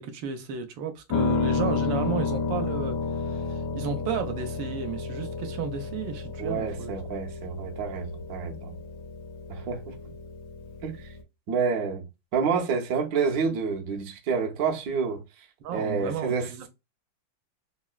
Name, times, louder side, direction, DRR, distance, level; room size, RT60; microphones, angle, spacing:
voice 1, 0.0-7.0 15.6-16.7, right 6 dB, 80° right, 1.3 m, -33 dB
Piano, 1.1-11.2, left 4 dB, 70° left, 1.1 m, -31 dB
voice 2, 6.4-8.7 9.5-9.9 10.8-11.1 11.5-12.0 12.3-15.2 15.7-16.7, right 5 dB, 65° right, 1.0 m, -28 dB
3.5 x 2.1 x 2.3 m
omnidirectional pair, 2.0 m